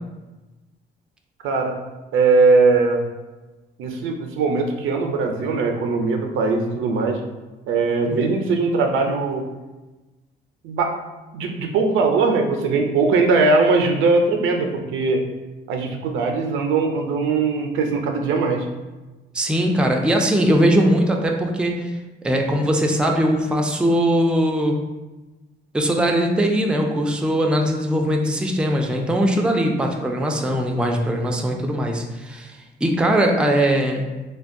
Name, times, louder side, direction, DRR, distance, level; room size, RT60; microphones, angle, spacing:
voice 1, 1.4-1.8 2.1-3.0 3.8-7.2 7.7-9.5 10.6-10.9 11.3-15.2 15.7-18.7, right 3 dB, 80° right, 3 dB, 0.5 m, -20 dB
voice 2, 19.3-21.9 22.2-24.8 25.7-34.1, equal, 5° right, 2 dB, 0.3 m, -20 dB
3.4 x 2.2 x 2.5 m, 1.1 s
cardioid pair, 90°, 20 cm